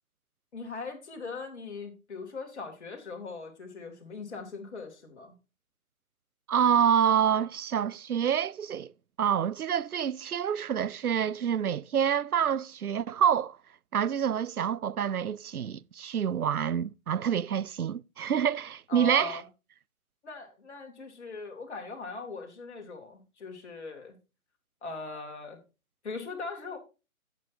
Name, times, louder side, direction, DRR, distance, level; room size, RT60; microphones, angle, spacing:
voice 1, 0.5-5.3 18.9-19.4 20.2-24.2 24.8-25.6 26.0-26.8, left 4 dB, 50° left, 2.9 m, -40 dB
voice 2, 6.5-8.9 9.2-13.6 13.9-19.4, right 8 dB, 85° right, 0.5 m, -27 dB
12.0 x 8.1 x 2.7 m
figure-of-eight pair, 140°, 43 cm